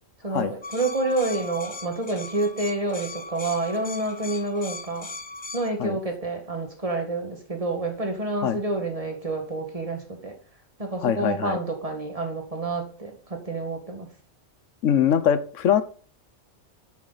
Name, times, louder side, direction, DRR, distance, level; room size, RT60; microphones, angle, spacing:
voice 1, 0.2-5.1 5.5-10.3 10.8-14.1, right 2 dB, 30° right, 3 dB, 1.8 m, -28 dB
sound 1, 0.6-5.7, left 2 dB, 30° left, 0.6 m, -38 dB
voice 2, 11.0-11.6 14.8-15.8, left 9 dB, 85° left, 13 dB, 1.2 m, -22 dB
9.4 x 6.2 x 4.1 m, 0.41 s
omnidirectional pair, 1.3 m